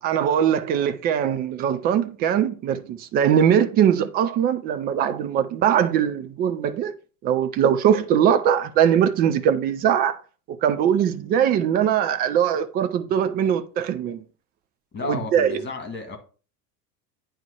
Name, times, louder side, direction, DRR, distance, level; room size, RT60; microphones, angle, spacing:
voice 1, 0.0-6.9 7.2-10.2 10.5-14.2 15.0-15.6, right 9 dB, 20° right, 0.4 m, -21 dB
voice 2, 14.9-16.2, left 3 dB, 20° left, 1.8 m, -32 dB
9.0 x 3.2 x 4.4 m
figure-of-eight pair, 70°, 48 cm